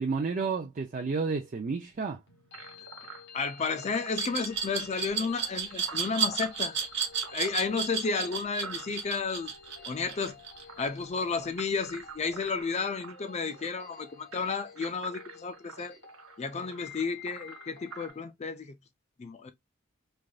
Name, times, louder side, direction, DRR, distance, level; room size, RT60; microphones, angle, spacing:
voice 1, 0.0-2.2, right 4 dB, 40° right, 0.4 m, -31 dB
sound 1, 2.3-18.2, left 6 dB, 60° left, 1.0 m, -51 dB
sound 2, 2.5-18.1, right 5 dB, 80° right, 0.8 m, -48 dB
voice 2, 3.3-6.8 7.3-9.5 9.9-10.4 10.8-16.0 16.4-18.7 19.2-19.5, left 4 dB, 35° left, 0.4 m, -32 dB
Glass, 4.1-11.0, right 7 dB, 60° right, 0.9 m, -32 dB
3.3 x 2.5 x 2.3 m
head